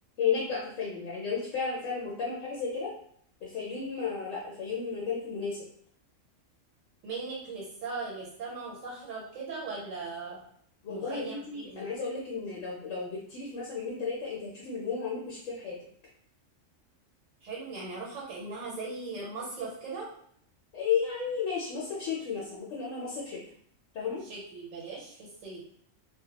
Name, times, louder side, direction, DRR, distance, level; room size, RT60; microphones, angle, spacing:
voice 1, 0.2-2.9 3.4-5.6 10.8-15.8 20.7-23.4 23.9-24.2, left 5 dB, 75° left, -4 dB, 0.9 m, -33 dB
voice 2, 7.0-10.4 10.9-11.9 17.4-20.1 24.2-25.6, right 3 dB, 75° right, -3 dB, 1.1 m, -39 dB
2.2 x 2.1 x 2.8 m, 0.64 s
omnidirectional pair, 1.3 m